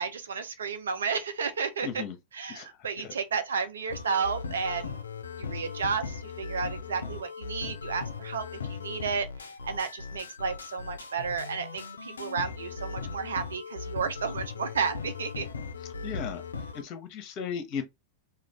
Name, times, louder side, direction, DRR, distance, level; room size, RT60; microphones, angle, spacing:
voice 1, 0.0-2.0 2.3-5.0 5.4-15.5, right 5 dB, 80° right, 0.6 m, -32 dB
voice 2, 1.8-2.2 2.5-2.7 3.0-3.1 16.0-16.4 16.7-17.8, left 7 dB, 45° left, 0.8 m, -35 dB
sound 1, 3.9-16.8, left 5 dB, 85° left, 0.4 m, -38 dB
2.5 x 2.3 x 3.3 m
hypercardioid pair, 95°, 0 cm